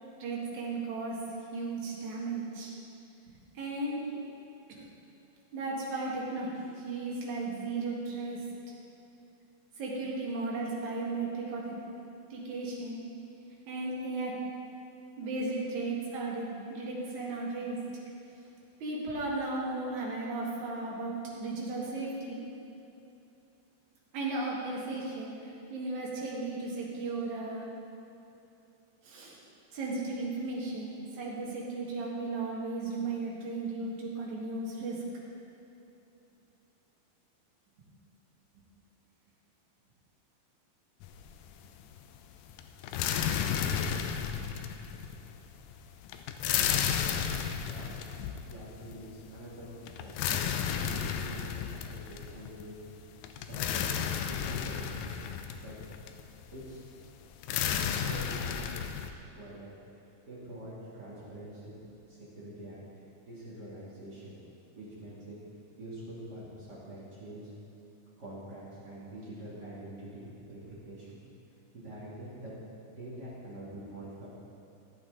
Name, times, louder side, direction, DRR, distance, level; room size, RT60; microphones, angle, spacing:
voice 1, 0.2-1.2 1.5-2.7 3.5-4.1 4.7-4.9 5.5-8.5 9.8-11.8 12.3-13.0 13.7-14.4 15.2-17.8 18.8-22.4 24.1-27.7 29.0-29.4 29.7-35.0, right 3 dB, 55° right, -4 dB, 2.9 m, -35 dB
sound 1, 41.0-41.7 41.9-59.1, left 8 dB, 85° left, 2.0 m, -33 dB
voice 2, 47.6-47.9 48.5-50.4 50.8-52.8 53.3-54.0 54.3-55.1 55.6-55.8 56.5-56.9 57.9-59.7 60.3-61.7 62.1-62.8 63.3-64.4 64.7-65.4 65.8-67.5 68.2-71.2 71.7-72.5 72.9-74.3, right 1 dB, 35° right, -8 dB, 2.1 m, -45 dB
15.0 x 8.6 x 3.9 m, 2.8 s
omnidirectional pair, 4.5 m